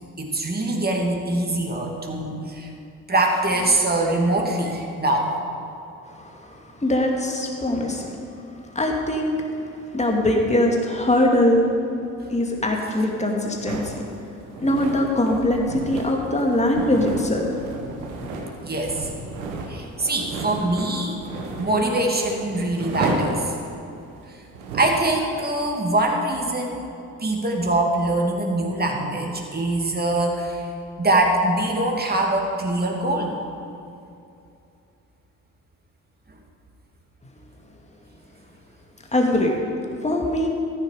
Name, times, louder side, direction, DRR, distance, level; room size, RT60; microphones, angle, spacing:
voice 1, 0.2-2.7 3.1-5.4 18.6-19.1 19.7-21.2 21.6-23.6 24.3-24.4 24.7-26.9 27.2-30.6 31.0-33.4, right 2 dB, 20° right, 0 dB, 2.7 m, -23 dB
voice 2, 6.8-8.1 8.7-9.3 9.9-11.6 12.3-14.0 14.6-17.5 39.1-39.5 40.0-40.5, left 1 dB, 15° left, 0 dB, 2.3 m, -21 dB
sound 1, 13.7-25.0, right 3 dB, 85° right, 1.5 m, -33 dB
14.0 x 11.0 x 5.0 m, 2.6 s
hypercardioid pair, 50°, 42 cm